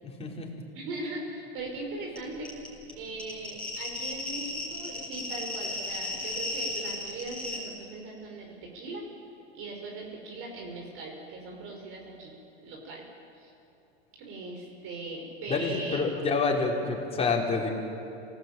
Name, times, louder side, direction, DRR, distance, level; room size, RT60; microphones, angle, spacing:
voice 1, 0.0-0.5 15.5-17.7, left 4 dB, 20° left, -1 dB, 5.0 m, -28 dB
voice 2, 0.7-2.5 2.9-9.1 9.5-12.3 12.6-13.1 13.3-13.5 14.2-16.3, right 2 dB, 40° right, 0 dB, 5.7 m, -39 dB
sound 1, 2.2-2.3 2.4-7.6, left 2 dB, 5° left, 7.7 m, -34 dB
27.0 x 19.0 x 9.2 m, 2.8 s
hypercardioid pair, 120°, 32 cm